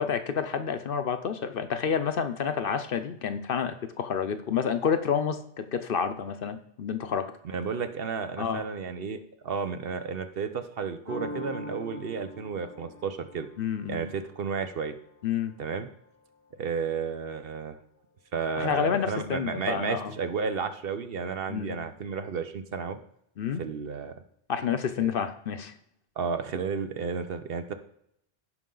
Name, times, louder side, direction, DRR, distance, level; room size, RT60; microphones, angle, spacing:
voice 1, 0.0-7.3 8.4-8.6 13.6-14.1 15.2-15.5 18.6-20.1 21.5-21.9 23.4-23.6 24.5-25.7, left 7 dB, 60° left, 9 dB, 0.8 m, -29 dB
voice 2, 7.4-9.2 9.4-13.5 13.9-14.9 15.6-15.9 16.6-17.8 18.3-23.0 23.6-24.1 25.0-25.1 26.2-27.7, right 5 dB, 60° right, 9 dB, 0.9 m, -32 dB
sound 1, 11.1-16.6, left 1 dB, 90° right, 5.3 m, -43 dB
15.5 x 5.5 x 3.8 m, 0.73 s
omnidirectional pair, 1.1 m